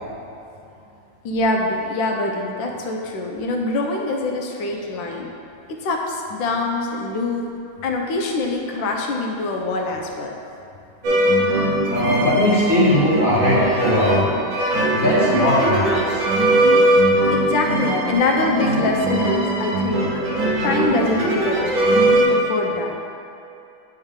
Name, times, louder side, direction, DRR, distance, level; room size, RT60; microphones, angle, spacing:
voice 1, 1.2-5.3 5.7-7.4 7.8-10.3 17.3-20.1 20.6-22.0 22.3-23.0, left 2 dB, 75° left, 1 dB, 1.3 m, -24 dB
sound 1, 11.0-22.2, right 1 dB, 70° right, 1.6 m, -20 dB
voice 2, 11.9-14.3 14.9-16.2, left 1 dB, 45° left, -9 dB, 0.6 m, -19 dB
8.9 x 3.4 x 3.6 m, 2.6 s
omnidirectional pair, 2.2 m